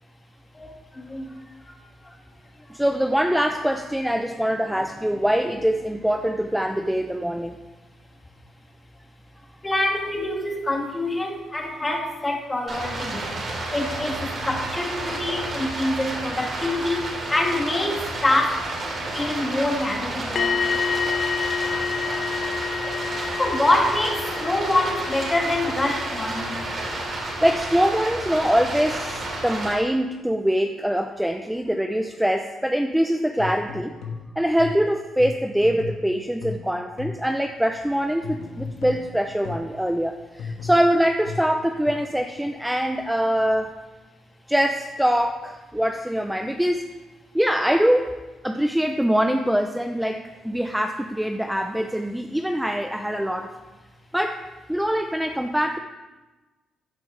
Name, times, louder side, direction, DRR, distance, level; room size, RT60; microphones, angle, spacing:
voice 1, 0.5-1.8 2.0-2.2 2.6-2.7 9.6-13.4 13.7-18.6 19.1-20.8 23.4-26.6, left 1 dB, 20° left, 1 dB, 2.0 m, -26 dB
voice 2, 2.7-7.6 27.2-33.9 34.4-43.8 44.5-46.9 47.3-53.5 54.1-55.8, equal, 5° right, 5 dB, 0.6 m, -23 dB
Stream, 12.7-29.7, right 2 dB, 50° right, 3.7 m, -31 dB
sound 1, 20.4-28.2 28.5-28.7, left 6 dB, 50° left, 0.3 m, -30 dB
sound 2, 33.4-37.4 38.2-39.8 40.4-41.9, left 4 dB, 80° left, 1.5 m, -35 dB
15.0 x 9.1 x 3.3 m, 1.2 s
cardioid pair, 90°, 0 cm